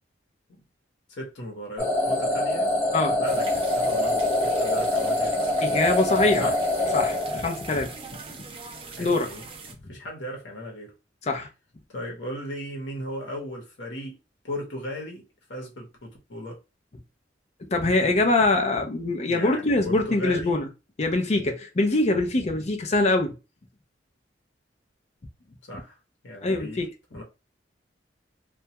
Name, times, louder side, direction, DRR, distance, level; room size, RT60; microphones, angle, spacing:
voice 1, 1.1-2.7 3.2-5.4 6.4-6.6 8.9-9.5 9.9-10.9 11.9-14.2 14.4-15.2 15.5-16.6 19.3-20.6 25.7-26.0 26.2-26.8 27.1-27.2, equal, 70° left, 0.9 m, -36 dB
sound 1, 1.8-7.9, left 1 dB, 15° left, 0.9 m, -25 dB
sound 2, 3.2-9.7, right 4 dB, 30° right, 0.4 m, -41 dB
voice 2, 5.6-6.5 6.9-7.9 8.3-8.4 9.0-9.3 11.3-11.5 17.6-20.7 21.0-23.3 26.4-26.9, left 2 dB, 35° left, 0.5 m, -23 dB
2.3 x 2.2 x 2.8 m
head